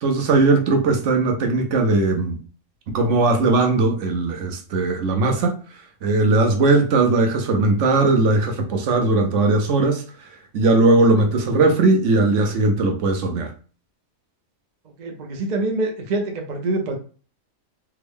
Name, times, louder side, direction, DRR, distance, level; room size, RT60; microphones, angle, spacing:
voice 1, 0.0-2.4 2.9-5.6 6.0-10.0 10.5-13.5, right 3 dB, 60° right, 0.9 m, -19 dB
voice 2, 15.0-17.0, right 2 dB, 45° right, 0.5 m, -25 dB
3.5 x 2.1 x 3.4 m
omnidirectional pair, 1.5 m